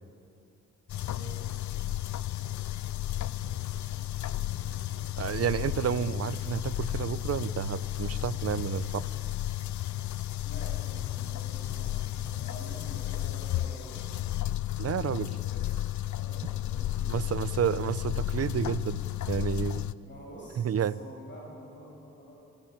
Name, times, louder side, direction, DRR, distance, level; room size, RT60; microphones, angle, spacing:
sound 1, 0.9-19.9, left 14 dB, 75° left, 0.6 m, -33 dB
voice 1, 1.0-1.7 3.2-5.1 10.4-14.3 14.8-17.5 20.0-22.3, equal, 40° left, -4 dB, 7.6 m, -48 dB
voice 2, 5.2-9.1 14.8-15.3 17.1-19.9 20.6-21.0, right 9 dB, 55° right, 15 dB, 0.8 m, -30 dB
29.5 x 16.0 x 8.9 m, 2.5 s
cardioid pair, 85°, 29 cm